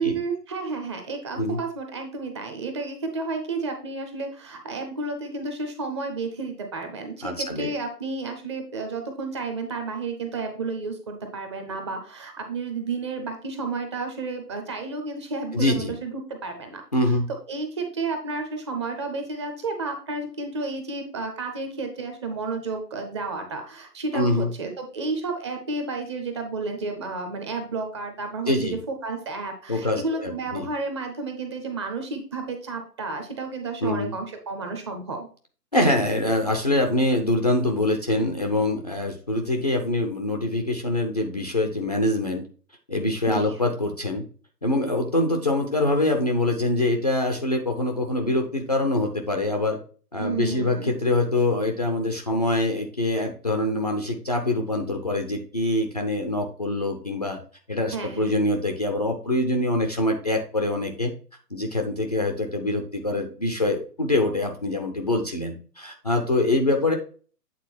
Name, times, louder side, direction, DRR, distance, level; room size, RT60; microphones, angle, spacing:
voice 1, 0.0-16.8 17.5-35.3 43.3-43.6 50.2-50.9 57.9-58.3, right 3 dB, 15° right, 4 dB, 0.7 m, -31 dB
voice 2, 7.2-7.7 15.5-15.9 16.9-17.3 24.1-24.5 28.5-28.8 29.7-30.7 33.8-34.1 35.7-42.4 42.9-44.2 44.6-49.8 50.1-57.4 57.7-61.1 61.5-66.9, left 1 dB, 25° left, 3 dB, 0.5 m, -24 dB
8.4 x 3.8 x 4.3 m, 0.41 s
figure-of-eight pair, 130°, 49 cm